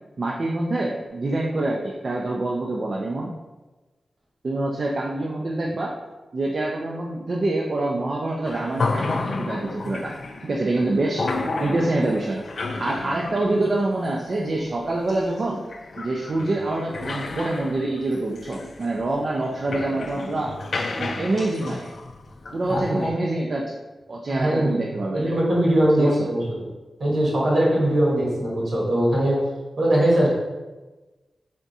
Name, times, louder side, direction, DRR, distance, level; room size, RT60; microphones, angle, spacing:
voice 1, 0.2-3.3 4.4-5.9 6.3-10.1 10.4-11.2 11.6-12.4 12.8-15.6 16.0-20.5 21.0-21.9 22.5-23.7 24.1-25.3 26.0-26.3, right 2 dB, 55° right, -2 dB, 0.4 m, -26 dB
sound 1, 8.4-23.1, left 3 dB, 65° left, 0.3 m, -32 dB
voice 2, 24.3-24.8 25.1-26.4 27.0-29.4 29.8-30.3, right 1 dB, 75° right, -5 dB, 1.5 m, -20 dB
3.5 x 2.5 x 4.0 m, 1.2 s
cardioid pair, 75°, 0 cm